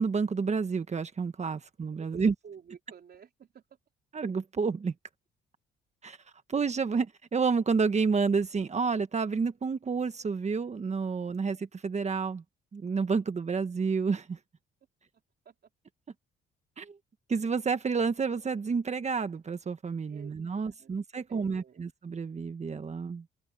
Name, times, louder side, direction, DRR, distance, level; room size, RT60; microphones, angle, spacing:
voice 1, 0.0-2.3 4.1-4.9 6.0-6.2 6.5-12.4 12.7-14.4 16.8-17.0 17.3-23.2, right 5 dB, 35° right, 1.4 m, -30 dB
voice 2, 2.0-3.6 15.4-15.5 20.1-21.8, right 7 dB, 55° right, 4.2 m, -52 dB
open air
cardioid pair, 90°, 20 cm